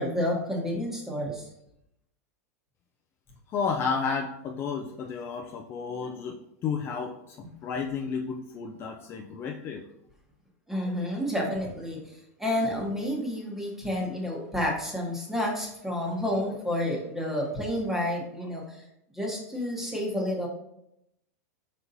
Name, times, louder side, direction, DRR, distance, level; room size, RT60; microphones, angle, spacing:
voice 1, 0.0-1.5 10.7-18.8 19.1-20.5, left 1 dB, 5° right, -1 dB, 1.0 m, -30 dB
voice 2, 3.5-7.4 7.6-9.8, left 5 dB, 30° left, 2 dB, 0.4 m, -32 dB
4.4 x 4.1 x 2.6 m, 0.81 s
supercardioid pair, 140°, 8 cm